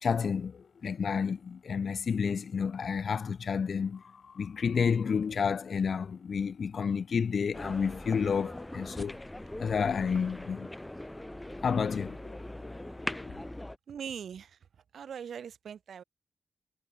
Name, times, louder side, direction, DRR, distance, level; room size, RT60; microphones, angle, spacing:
voice 1, 0.0-9.2 9.6-10.7 11.6-13.3, left 6 dB, 65° left, 2.8 m, -31 dB
sound 1, 7.5-13.8, left 1 dB, 10° left, 6.7 m, -41 dB
voice 2, 13.9-14.6 14.9-16.0, right 7 dB, 85° right, 4.9 m, -41 dB
cardioid pair, 85°, 0 cm